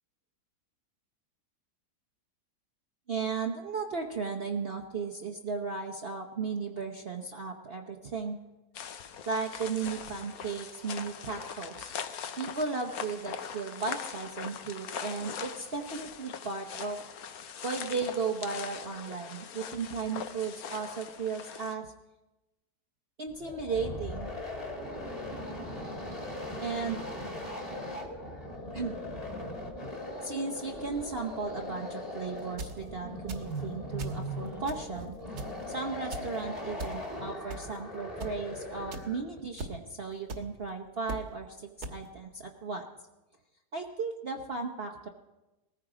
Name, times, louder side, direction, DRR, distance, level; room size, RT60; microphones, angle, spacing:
voice 1, 3.1-8.4 9.3-11.9 12.4-17.0 17.6-21.9 23.2-24.3 26.6-27.0 28.7-29.0 30.2-35.2 35.7-42.9 43.7-45.1, right 4 dB, 40° right, 1 dB, 1.0 m, -35 dB
sound 1, 8.7-21.7, left 7 dB, 65° left, 1.3 m, -41 dB
sound 2, 23.3-39.4, left 1 dB, 20° left, 2.3 m, -39 dB
sound 3, 32.4-32.8 33.3-33.6 34.0-34.2 34.7-35.0 35.4-35.6 36.1-36.3 36.8-36.9 37.5-37.8 38.2-38.3 38.9-39.0 39.6-39.7 40.3-40.4 41.1-41.2 41.8-41.9, right 2 dB, 65° right, 1.9 m, -38 dB
19.5 x 14.5 x 5.0 m, 1.0 s
omnidirectional pair, 1.8 m